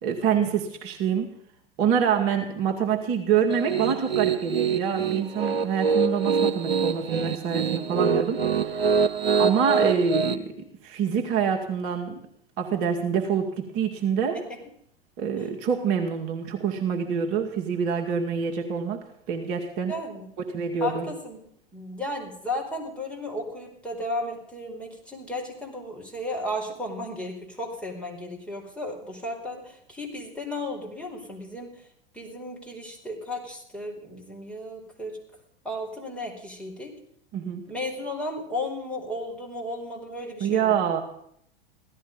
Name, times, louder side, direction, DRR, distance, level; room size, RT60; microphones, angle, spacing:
voice 1, 0.0-1.4 1.8-8.9 9.4-12.2 12.6-14.4 15.2-19.9 20.4-21.1 37.3-37.6 40.4-41.0, right 7 dB, 50° right, 2 dB, 2.1 m, -26 dB
Piano, 3.5-10.3, right 6 dB, 85° right, 0.9 m, -25 dB
voice 2, 19.9-20.3 20.8-21.4 21.7-31.9 32.1-35.2 35.6-36.9 37.7-40.8, left 1 dB, 5° left, -1 dB, 4.6 m, -34 dB
16.5 x 13.0 x 5.3 m, 0.70 s
hypercardioid pair, 90°, 29 cm